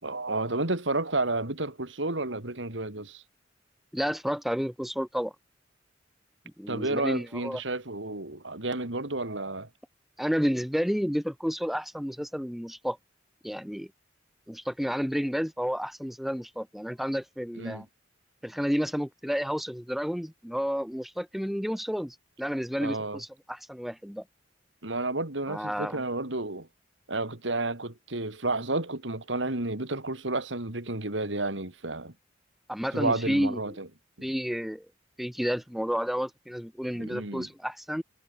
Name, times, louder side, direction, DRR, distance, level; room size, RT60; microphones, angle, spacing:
voice 1, 0.0-3.2 6.7-9.7 17.6-17.8 22.8-23.2 24.8-26.7 27.1-32.1 32.9-33.9 34.2-34.3 37.0-37.5, right 2 dB, 75° right, 3.3 m, -31 dB
voice 2, 3.9-5.3 6.6-7.6 10.2-13.0 13.4-13.9 14.5-17.9 18.4-24.2 25.5-26.0 32.7-33.6 34.2-34.9 35.2-38.0, equal, ahead, 0.6 m, -31 dB
head